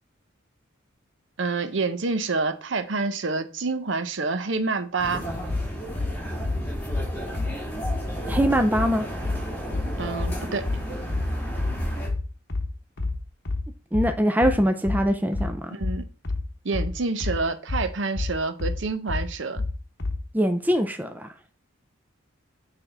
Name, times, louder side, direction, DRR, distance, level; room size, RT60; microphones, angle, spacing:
voice 1, 1.4-5.2 10.0-10.7 15.7-16.1 16.6-19.6, right 3 dB, 65° right, 0.7 m, -27 dB
sound 1, 5.0-12.1, equal, 10° left, 2.5 m, -32 dB
sound 2, 5.5-20.3, left 2 dB, 50° left, 1.0 m, -29 dB
voice 2, 8.3-9.0 13.9-15.8 20.3-21.3, equal, 10° right, 0.4 m, -23 dB
6.9 x 3.5 x 5.4 m
head